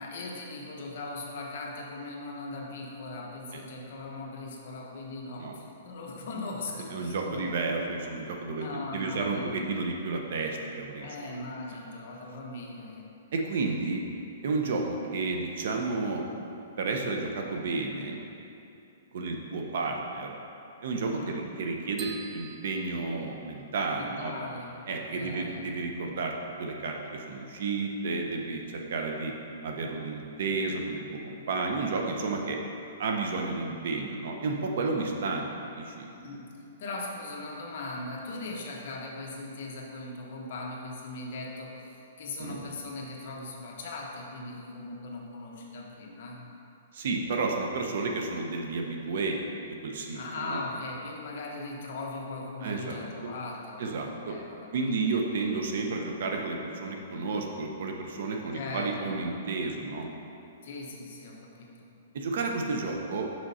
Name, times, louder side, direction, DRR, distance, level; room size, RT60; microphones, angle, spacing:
voice 1, 0.0-7.4 8.5-9.5 11.0-13.1 21.0-21.4 23.9-25.6 36.1-36.5 36.8-46.4 50.1-55.0 58.5-59.2 60.6-61.9, left 2 dB, 50° left, -1 dB, 1.1 m, -39 dB
voice 2, 6.9-11.4 13.3-14.0 14.4-16.2 16.8-18.2 19.1-20.3 20.8-24.3 24.9-26.3 26.6-29.3 29.6-32.6 33.0-35.5 35.8-36.1 42.4-42.6 46.9-49.4 49.6-50.6 52.6-53.3 53.8-54.4 54.7-60.1 62.1-63.3, right 3 dB, 55° right, 2 dB, 0.9 m, -31 dB
sound 1, 22.0-23.9, right 7 dB, 20° right, 0.4 m, -46 dB
6.3 x 6.2 x 4.2 m, 2.8 s
hypercardioid pair, 170°, 0 cm